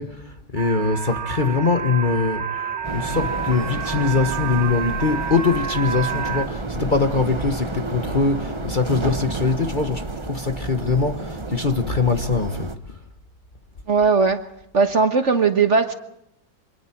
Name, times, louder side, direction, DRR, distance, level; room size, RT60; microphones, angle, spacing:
voice 1, 0.0-12.7, left 4 dB, 30° left, 1.3 m, -22 dB
sound 1, 0.6-6.5, right 7 dB, 75° right, 2.0 m, -29 dB
sound 2, 2.8-12.7, right 2 dB, 20° right, 1.0 m, -31 dB
voice 2, 13.9-14.4 14.7-15.9, right 4 dB, 45° right, 1.4 m, -18 dB
28.0 x 25.5 x 4.5 m
omnidirectional pair, 1.9 m